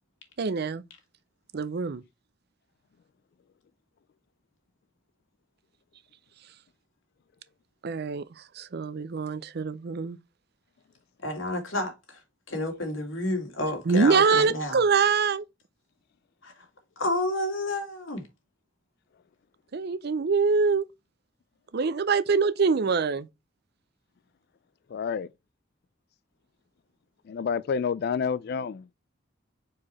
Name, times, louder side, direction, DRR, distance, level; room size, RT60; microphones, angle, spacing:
voice 1, 0.4-0.8 1.5-2.0 7.8-8.2 8.6-10.2 13.9-15.4 19.7-20.8 21.7-23.3, right 5 dB, 55° right, 0.5 m, -24 dB
voice 2, 11.2-12.2 12.5-14.8 16.4-16.7 17.0-18.2, left 1 dB, 85° left, 2.2 m, -30 dB
voice 3, 24.9-25.3 27.3-28.9, left 6 dB, 55° left, 0.3 m, -29 dB
4.7 x 4.7 x 4.2 m
head